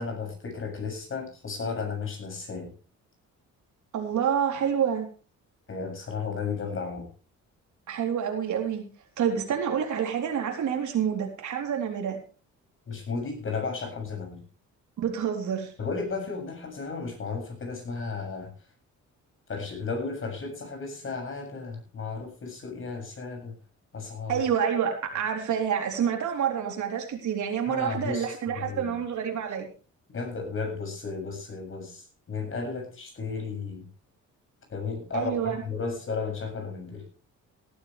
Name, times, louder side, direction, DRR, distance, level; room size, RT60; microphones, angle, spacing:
voice 1, 0.0-2.7 5.7-7.1 12.9-14.4 15.8-18.5 19.5-23.5 23.9-24.4 27.7-28.3 28.6-29.0 30.1-33.8 34.7-37.0, left 4 dB, 40° left, 3 dB, 7.4 m, -34 dB
voice 2, 3.9-5.1 7.9-8.8 9.2-12.2 15.0-15.7 24.3-29.7 35.1-35.6, right 8 dB, 70° right, 2 dB, 3.9 m, -28 dB
18.5 x 12.5 x 3.5 m, 0.36 s
cardioid pair, 120°, 31 cm